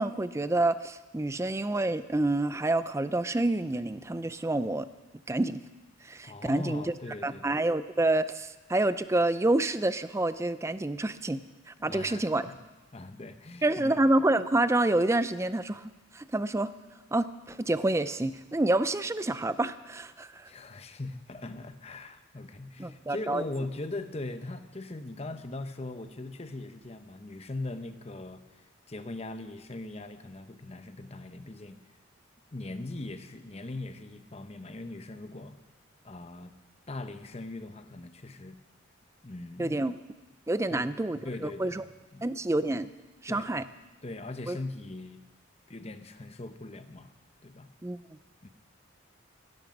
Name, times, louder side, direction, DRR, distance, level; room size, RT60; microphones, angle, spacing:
voice 1, 0.0-4.9 5.3-5.6 6.0-6.8 7.2-11.4 11.7-12.4 13.6-15.9 16.1-16.7 17.1-20.5 22.8-23.4 39.6-40.0 40.5-41.8 42.2-42.9 43.2-43.6 44.5-44.6 47.8-48.0, right 2 dB, 15° right, 14 dB, 0.4 m, -28 dB
voice 2, 6.2-7.6 11.8-12.6 12.9-13.9 20.5-28.6 28.9-31.8 32.5-35.6 36.0-36.5 36.9-38.6 39.2-39.8 40.7-40.9 41.2-41.8 42.1-42.3 43.3-43.6 44.0-45.2 45.7-47.1 47.4-47.7 48.4-48.5, left 2 dB, 30° left, 9 dB, 0.8 m, -40 dB
16.5 x 13.5 x 5.2 m, 1.2 s
head